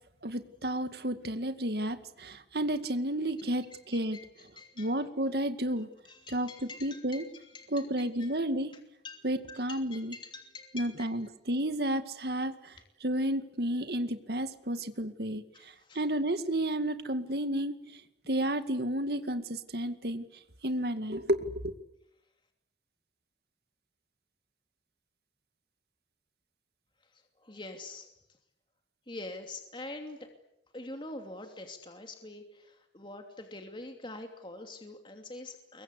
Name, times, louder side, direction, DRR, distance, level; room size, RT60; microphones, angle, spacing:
voice 1, 0.2-4.2 4.8-5.9 6.3-7.3 7.7-8.7 9.2-10.2 10.7-18.0 18.3-20.2 20.6-21.7, right 1 dB, 60° right, 9 dB, 2.2 m, -32 dB
voice 2, 3.7-5.0 6.0-7.7 8.2-8.3 9.0-11.1 15.5-16.0 27.1-28.1 29.1-30.3 30.7-35.8, left 2 dB, 30° left, 4 dB, 2.9 m, -45 dB
28.0 x 23.5 x 8.3 m, 0.80 s
head